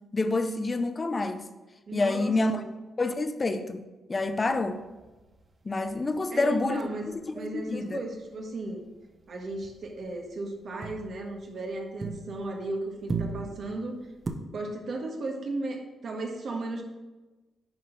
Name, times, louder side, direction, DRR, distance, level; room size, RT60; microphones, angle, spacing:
voice 1, 0.1-1.5 1.9-2.6 3.0-3.8 4.1-4.8 5.6-6.8 7.3-8.0, left 2 dB, 30° left, 9 dB, 0.6 m, -27 dB
voice 2, 1.9-2.6 6.3-8.9 9.3-14.0 14.5-16.8, right 2 dB, 60° right, 1 dB, 1.5 m, -35 dB
sound 1, 4.2-7.9 8.2-8.5 8.8-12.7 12.9-14.3, right 4 dB, 35° right, 0.9 m, -39 dB
10.5 x 4.1 x 3.9 m, 1.1 s
cardioid pair, 80°, 0 cm